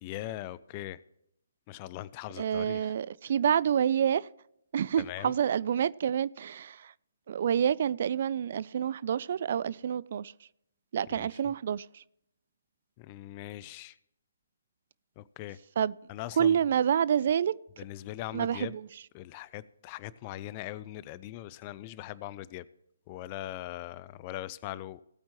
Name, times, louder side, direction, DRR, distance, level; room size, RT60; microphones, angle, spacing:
voice 1, 0.0-1.0 1.7-2.9 5.0-5.3 11.1-11.3 13.0-13.9 15.2-15.6 16.1-16.6 17.8-18.7 19.1-22.7 23.1-25.0, left 15 dB, 25° left, 0.4 m, -40 dB
voice 2, 2.4-4.3 4.7-6.9 7.3-10.3 10.9-12.0 15.8-16.0 16.4-17.5 18.3-19.0, right 8 dB, 45° right, 0.3 m, -28 dB
18.5 x 8.7 x 3.0 m
figure-of-eight pair, 135°, 0 cm